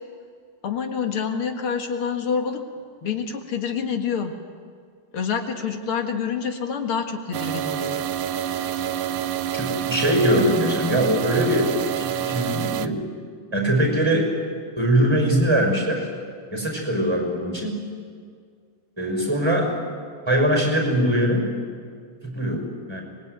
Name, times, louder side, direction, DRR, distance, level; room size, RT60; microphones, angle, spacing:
voice 1, 0.6-2.6 3.0-4.3 5.1-8.1 8.5-8.8, left 6 dB, 80° left, 5 dB, 2.6 m, -27 dB
sound 1, 7.3-12.9, right 10 dB, 85° right, 1.7 m, -27 dB
voice 2, 9.5-13.0 13.5-14.3 14.8-16.1 16.5-17.8 19.0-19.7 20.3-21.5 22.2-22.6 22.9-23.0, equal, 10° right, 1 dB, 6.2 m, -22 dB
25.0 x 21.0 x 9.5 m, 2.1 s
omnidirectional pair, 2.3 m